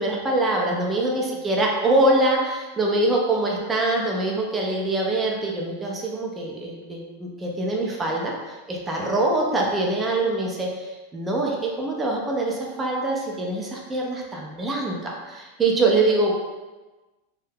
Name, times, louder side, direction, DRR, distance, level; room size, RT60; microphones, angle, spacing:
voice 1, 0.0-16.3, right 2 dB, 20° right, -2 dB, 0.6 m, -24 dB
2.6 x 2.3 x 3.6 m, 1.2 s
hypercardioid pair, 105°, 0 cm